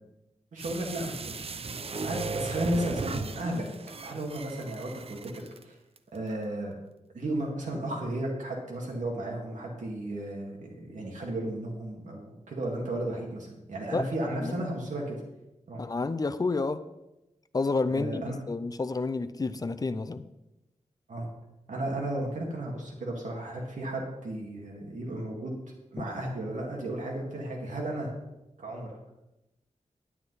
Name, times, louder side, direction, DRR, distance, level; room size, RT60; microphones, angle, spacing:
voice 1, 0.5-1.5 2.0-3.7 4.0-5.3 5.6-5.8 6.1-6.7 7.1-15.2 15.7-15.8 17.9-18.4 21.1-21.3 21.7-25.5 25.9-28.1 28.6-29.1, right 1 dB, 75° right, -1 dB, 2.0 m, -34 dB
sound 1, 0.6-5.6 6.0-6.1, right 4 dB, 50° right, 0.6 m, -36 dB
voice 2, 15.8-16.8 17.5-20.2 26.0-26.1, left 3 dB, 30° left, 11 dB, 0.6 m, -30 dB
11.0 x 9.5 x 4.1 m, 0.96 s
wide cardioid pair, 125°, 13 cm